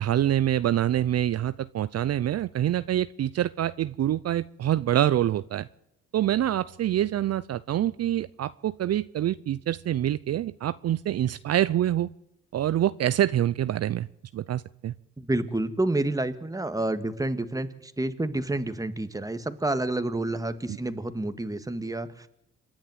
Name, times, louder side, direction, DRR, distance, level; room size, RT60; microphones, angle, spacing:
voice 1, 0.0-5.7 6.1-12.1 12.5-14.1 14.3-14.9, right 12 dB, 55° right, 15 dB, 0.6 m, -26 dB
voice 2, 15.2-22.3, right 2 dB, 10° right, 11 dB, 1.8 m, -29 dB
27.0 x 10.5 x 9.2 m, 0.85 s
cardioid pair, 90°, 30 cm